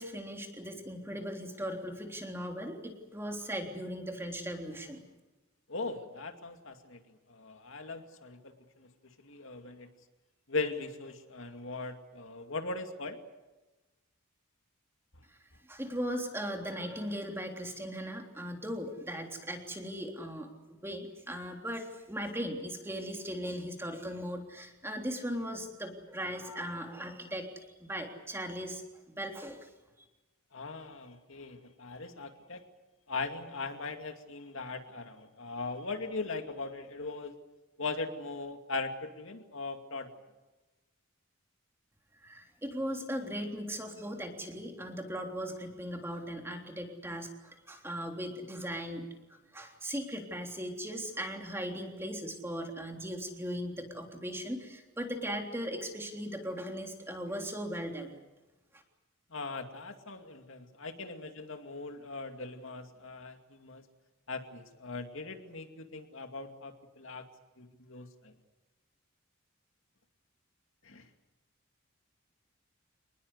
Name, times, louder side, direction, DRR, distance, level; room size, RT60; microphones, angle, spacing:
voice 1, 0.0-5.0 15.7-28.8 29.2-29.7 42.2-58.2 58.7-58.8, equal, 10° right, 3 dB, 3.4 m, -38 dB
voice 2, 5.7-7.0 7.3-8.9 9.2-9.9 10.5-13.2 30.5-32.6 33.1-37.3 37.8-40.1 59.3-63.8 64.3-67.2 67.6-68.3 70.8-71.0, left 3 dB, 65° left, 5 dB, 2.5 m, -39 dB
27.5 x 20.5 x 8.2 m, 1.1 s
head